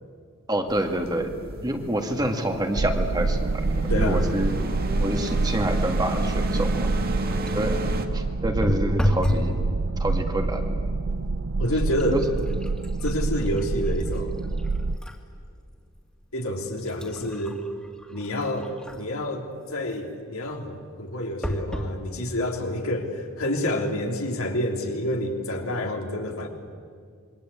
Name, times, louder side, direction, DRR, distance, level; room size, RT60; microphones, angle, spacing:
voice 1, 0.5-1.3 1.6-4.6 5.0-6.9 7.5-7.8 8.1-9.6 10.0-11.0 12.1-12.2, right 1 dB, 20° right, 4 dB, 2.0 m, -27 dB
sound 1, 0.7-8.1, right 1 dB, 45° right, 1.9 m, -33 dB
sound 2, 2.7-15.0, right 3 dB, 80° right, 0.7 m, -26 dB
voice 2, 3.7-4.3 11.6-12.2 13.0-14.4 16.3-17.6 18.1-26.5, left 1 dB, 80° left, 2 dB, 3.5 m, -28 dB
sound 3, 7.3-7.7 8.6-9.5 9.9-10.4 11.1-11.3 11.6-15.2 15.7-15.8 16.5-19.2 21.4-21.9 22.6-22.7 23.0-23.1, left 1 dB, 5° left, 2.5 m, -31 dB
27.0 x 22.5 x 8.6 m, 2.1 s
head